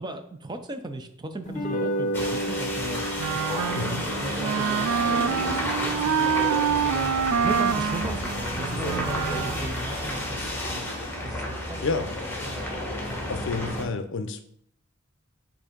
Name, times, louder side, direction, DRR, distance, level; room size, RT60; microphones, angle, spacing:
voice 1, 0.0-7.1 7.4-10.9 11.2-11.8 12.4-12.6, right 2 dB, 20° right, 7 dB, 0.5 m, -37 dB
sound 1, 1.5-8.0, right 1 dB, 35° left, 0.9 m, -34 dB
sound 2, 2.1-13.8, left 1 dB, 10° left, 1.1 m, -31 dB
Wind instrument woodwind instrument, 3.2-9.7, right 7 dB, 80° right, 0.3 m, -27 dB
voice 2, 13.3-14.5, left 4 dB, 60° left, 9 dB, 0.5 m, -29 dB
7.5 x 2.7 x 5.0 m, 0.69 s
head